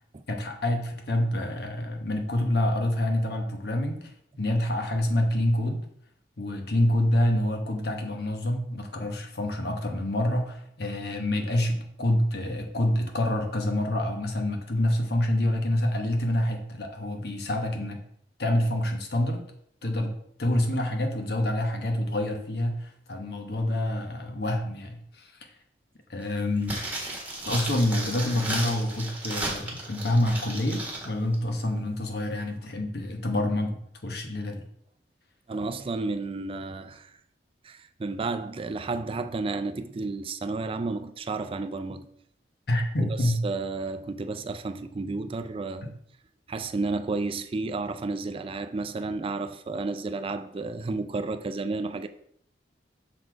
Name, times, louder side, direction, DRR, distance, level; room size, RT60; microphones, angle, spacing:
voice 1, 0.3-5.8 6.4-18.0 18.4-19.5 19.8-25.3 26.1-26.8 27.5-34.7 42.7-43.4 45.8-45.9, left 1 dB, 65° left, 1.1 m, -27 dB
sound 1, 26.6-31.1 31.3-31.4, right 2 dB, 10° right, 1.5 m, -34 dB
voice 2, 35.5-37.1 37.6-42.1 43.0-45.9 46.5-52.1, right 3 dB, 30° right, 0.4 m, -32 dB
6.4 x 4.1 x 4.5 m
head